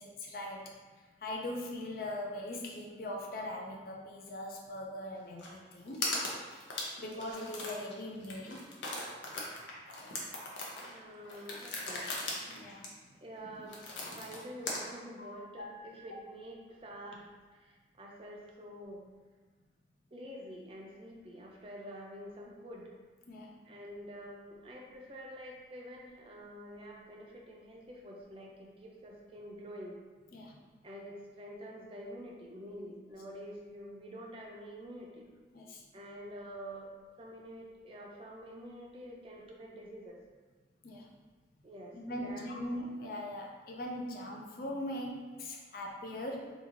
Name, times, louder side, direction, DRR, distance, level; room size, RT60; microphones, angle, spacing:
voice 1, 0.0-6.1 7.0-8.7 10.0-10.2 12.5-12.9 15.2-16.0 23.3-23.5 30.3-30.6 35.5-35.8 40.8-41.1 41.9-46.5, left 1 dB, 50° left, 0 dB, 0.4 m, -41 dB
sound 1, 5.4-5.5 5.8-7.9 8.2-14.8, left 2 dB, 85° left, 0.7 m, -39 dB
voice 2, 10.8-12.4 13.2-19.0 20.1-22.9 23.7-30.0 30.8-35.3 35.9-36.9 37.2-40.2 41.6-42.4, equal, 30° right, -2 dB, 0.4 m, -47 dB
3.0 x 2.3 x 3.8 m, 1.3 s
head